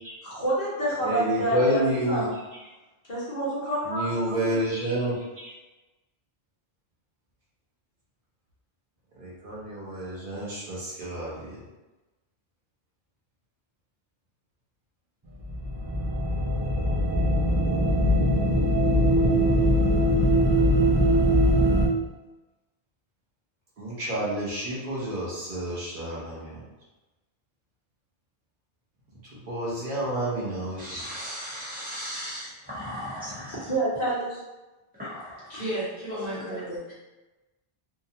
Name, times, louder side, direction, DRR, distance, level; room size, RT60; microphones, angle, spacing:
voice 1, 0.2-2.3 3.1-4.5 33.5-34.4 35.5-36.9, right 1 dB, 45° left, -9 dB, 0.9 m, -29 dB
voice 2, 1.0-2.2 3.9-5.5 9.2-11.6 23.8-26.6 29.4-31.0, equal, 60° right, -7 dB, 0.8 m, -29 dB
sound 1, 15.4-21.9, equal, 35° right, 0.4 m, -21 dB
voice 3, 30.8-33.5 35.0-35.2, equal, 10° right, -11 dB, 1.1 m, -36 dB
2.8 x 2.1 x 2.7 m, 1.1 s
omnidirectional pair, 1.0 m